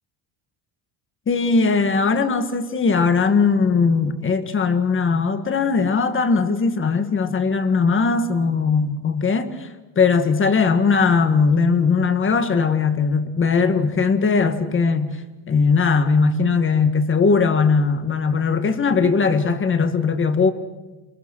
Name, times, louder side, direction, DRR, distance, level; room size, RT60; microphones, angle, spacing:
voice 1, 1.3-9.7 10.0-15.2 15.5-20.5, left 4 dB, 25° left, 1.7 m, -19 dB
29.0 x 23.0 x 6.3 m
cardioid pair, 160°, 47 cm